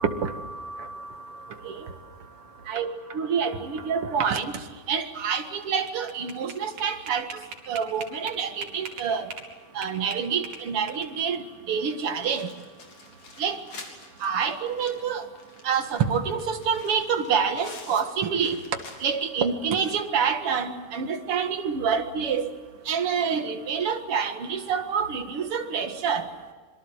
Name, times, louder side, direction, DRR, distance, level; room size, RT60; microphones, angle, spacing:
voice 1, 0.0-1.9 2.7-4.6 4.9-7.3 7.7-9.3 9.7-12.5 13.4-13.6 14.2-15.3 15.6-18.6 19.0-22.5 22.9-26.3, right 6 dB, 50° right, 7 dB, 2.4 m, -27 dB
sound 1, 5.6-9.5 9.8-11.3, right 4 dB, 70° right, 4.3 m, -41 dB
sound 2, 12.1-19.4 19.7-19.8 20.2-20.3 21.5-21.6, left 4 dB, 60° left, 4.6 m, -47 dB
26.0 x 23.0 x 8.2 m, 1.5 s
omnidirectional pair, 3.6 m